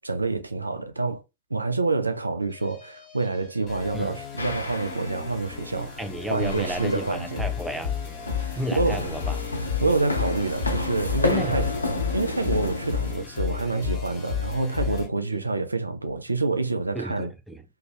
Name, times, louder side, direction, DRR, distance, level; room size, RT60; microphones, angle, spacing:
voice 1, 0.0-1.2 1.5-6.0 6.3-7.5 8.7-9.1 9.8-11.7 12.1-17.3, right 3 dB, 80° right, 0.3 m, -27 dB
sound 1, 2.5-15.1, left 8 dB, 30° left, 1.2 m, -33 dB
sound 2, 4.4-13.1, left 2 dB, 80° left, 0.4 m, -32 dB
voice 2, 6.0-8.0 8.6-9.4 11.2-11.7 16.9-17.6, right 1 dB, 5° right, 0.5 m, -32 dB
2.6 x 2.3 x 2.9 m
figure-of-eight pair, 90°, 0 cm